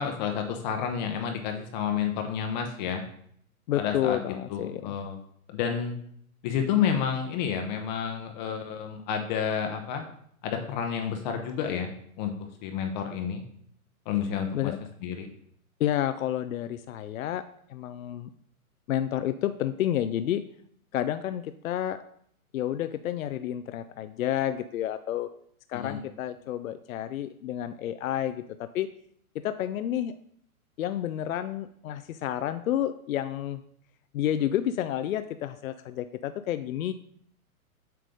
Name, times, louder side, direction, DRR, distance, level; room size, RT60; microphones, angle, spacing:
voice 1, 0.0-3.0 3.8-4.2 4.5-5.2 5.5-6.0 6.4-10.0 10.4-12.3 12.6-13.4 14.1-14.7 15.0-15.3 25.7-26.0, left 8 dB, 30° left, 4 dB, 0.7 m, -30 dB
voice 2, 3.7-4.9 14.5-14.8 15.8-18.3 18.9-20.4 20.9-22.0 22.5-25.3 25.7-28.9 29.4-30.1 30.8-33.6 34.1-36.9, left 11 dB, 65° left, 11 dB, 0.5 m, -30 dB
7.7 x 3.3 x 5.2 m, 0.66 s
hypercardioid pair, 125°, 44 cm